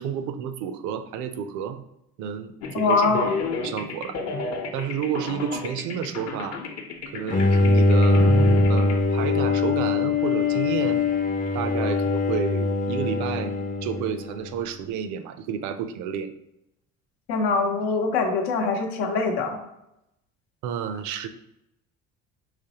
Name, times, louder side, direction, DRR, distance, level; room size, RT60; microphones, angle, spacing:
voice 1, 0.0-1.8 2.2-3.2 3.6-4.1 4.7-6.6 7.1-11.0 11.5-13.6 13.8-16.3 20.6-21.3, right 8 dB, 70° right, 10 dB, 0.5 m, -31 dB
sound 1, 2.6-9.0, left 4 dB, 55° left, 0.8 m, -31 dB
voice 2, 2.7-3.3 17.3-19.6, left 4 dB, 85° left, 3 dB, 0.8 m, -23 dB
Bowed string instrument, 7.3-14.5, left 2 dB, 25° left, 0.5 m, -22 dB
5.0 x 3.1 x 2.8 m, 0.85 s
supercardioid pair, 80°, 31 cm